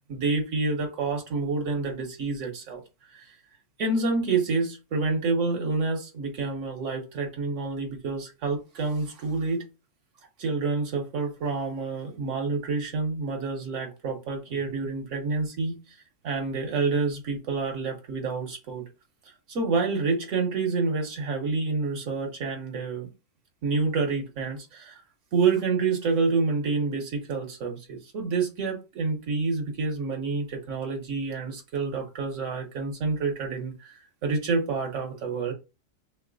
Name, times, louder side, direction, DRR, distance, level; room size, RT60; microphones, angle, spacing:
voice 1, 0.0-2.8 3.1-3.3 3.8-9.6 10.4-15.8 16.2-18.9 19.5-23.1 23.6-25.0 25.3-35.5, right 4 dB, 70° right, 1.2 m, -28 dB
3.0 x 2.8 x 3.8 m
omnidirectional pair, 1.3 m